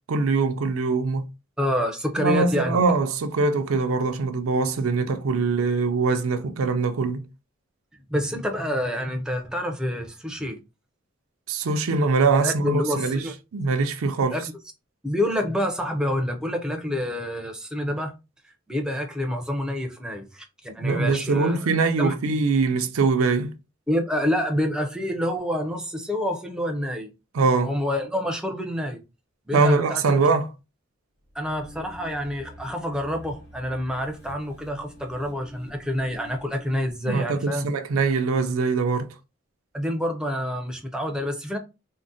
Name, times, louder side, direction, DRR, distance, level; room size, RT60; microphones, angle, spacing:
voice 1, 0.1-1.3 2.2-7.2 11.5-13.2 13.5-14.4 20.8-23.5 27.3-27.7 29.5-30.5 37.1-39.1, right 4 dB, 90° right, 0.5 m, -22 dB
voice 2, 1.6-2.8 8.1-10.6 12.3-13.3 14.3-14.4 15.0-18.1 18.7-21.7 22.0-22.1 23.9-27.1 27.6-29.0 29.5-30.2 31.3-37.7 39.7-41.6, equal, 5° right, 0.4 m, -27 dB
sound 1, 31.2-36.9, equal, 50° left, 1.0 m, -46 dB
3.6 x 2.1 x 2.6 m
head